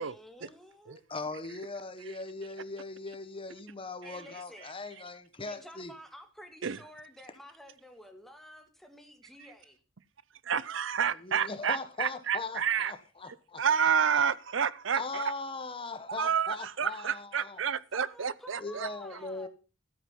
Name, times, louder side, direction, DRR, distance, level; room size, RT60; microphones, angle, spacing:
voice 1, 0.0-1.0 4.0-4.7 5.5-9.8 17.9-19.5, equal, ahead, 2.1 m, -51 dB
voice 2, 1.1-5.9 11.2-13.6 14.9-17.6 18.6-19.5, left 3 dB, 30° left, 1.4 m, -39 dB
voice 3, 10.4-12.9 13.6-15.2 16.2-18.9, right 7 dB, 75° right, 0.6 m, -29 dB
13.0 x 9.3 x 5.6 m
head